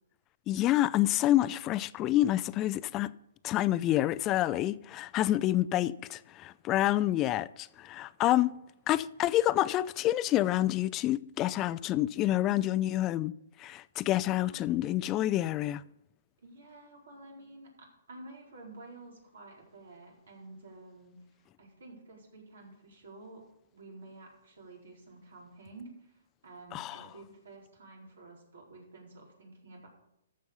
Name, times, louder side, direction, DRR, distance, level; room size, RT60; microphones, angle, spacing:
voice 1, 0.5-3.1 3.4-8.5 8.9-15.8 26.7-27.1, left 14 dB, 25° left, 0.4 m, -28 dB
voice 2, 14.3-14.7 16.4-21.2 21.6-23.4 23.7-29.9, right 2 dB, 75° right, 4.4 m, -51 dB
14.0 x 6.3 x 5.5 m
hypercardioid pair, 135°, 0 cm